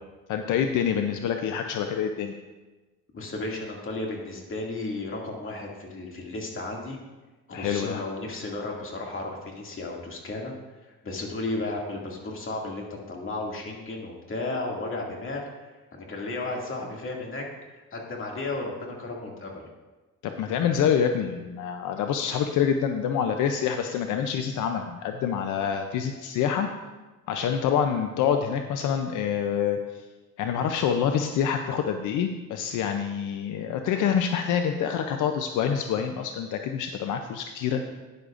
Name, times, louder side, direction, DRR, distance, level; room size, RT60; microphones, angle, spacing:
voice 1, 0.3-2.3 7.5-8.0 20.2-26.7 27.3-30.0 30.4-37.8, left 8 dB, 85° left, 6 dB, 0.6 m, -26 dB
voice 2, 3.1-7.0 7.5-10.5 11.0-15.4 15.9-17.4 17.7-19.5, left 2 dB, 45° left, -1 dB, 2.3 m, -34 dB
12.0 x 9.8 x 2.5 m, 1.2 s
cardioid pair, 90°, 30 cm